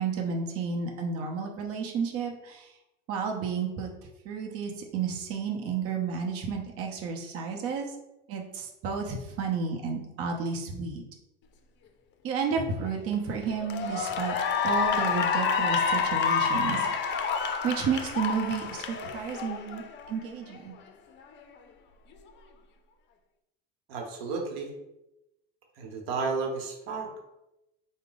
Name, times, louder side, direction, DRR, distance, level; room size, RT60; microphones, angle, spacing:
voice 1, 0.0-2.8 3.1-3.9 4.2-7.9 8.3-11.0 12.2-14.3 14.6-20.7, right 6 dB, 50° right, 1 dB, 0.8 m, -32 dB
Cheering / Applause, 12.9-13.1 13.6-20.1, left 6 dB, 40° left, 0.5 m, -28 dB
voice 2, 23.9-24.7 25.8-27.2, right 4 dB, 85° right, 1 dB, 0.9 m, -32 dB
4.6 x 2.2 x 3.9 m, 0.91 s
supercardioid pair, 115°, 30 cm